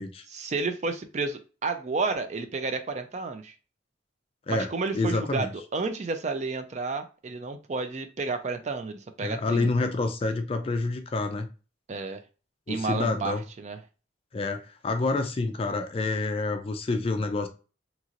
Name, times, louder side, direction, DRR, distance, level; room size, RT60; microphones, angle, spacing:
voice 1, 0.3-3.5 4.5-9.7 11.9-12.2 12.7-13.8, right 3 dB, 40° right, 0.4 m, -31 dB
voice 2, 4.9-5.5 9.2-11.5 12.7-13.4 14.3-17.5, left 3 dB, 30° left, 0.3 m, -28 dB
2.9 x 2.9 x 2.5 m
head